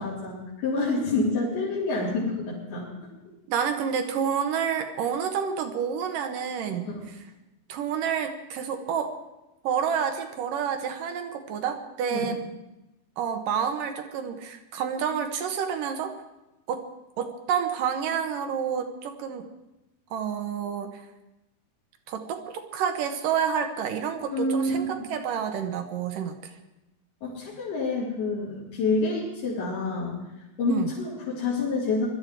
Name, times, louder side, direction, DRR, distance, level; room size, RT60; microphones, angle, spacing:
voice 1, 0.0-2.9 6.9-7.0 12.1-12.3 24.3-24.9 27.2-30.2 30.6-32.1, left 3 dB, 80° left, -9 dB, 5.4 m, -27 dB
voice 2, 3.5-6.9 7.7-9.2 9.6-12.4 13.2-16.1 16.7-16.8 17.2-19.5 20.1-21.0 22.1-26.5 30.7-30.9, right 7 dB, 70° right, 6 dB, 2.5 m, -29 dB
21.5 x 13.0 x 4.6 m, 0.97 s
omnidirectional pair, 4.4 m